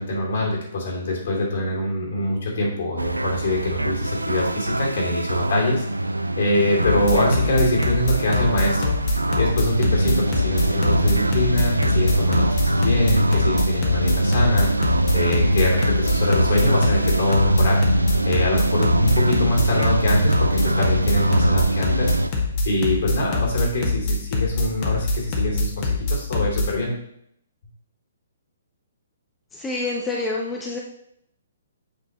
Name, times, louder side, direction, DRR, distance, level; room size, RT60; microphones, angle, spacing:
voice 1, 0.0-5.9 6.4-9.0 9.4-17.8 18.2-22.1 22.6-26.9, left 1 dB, 55° left, -2 dB, 2.8 m, -24 dB
sound 1, 3.0-22.3, right 1 dB, 85° right, 0.4 m, -22 dB
sound 2, 6.8-26.7, left 2 dB, 35° left, 1.6 m, -24 dB
voice 2, 29.5-30.8, left 2 dB, 10° left, -2 dB, 0.8 m, -27 dB
8.1 x 5.7 x 3.1 m, 0.72 s
figure-of-eight pair, 125°, 0 cm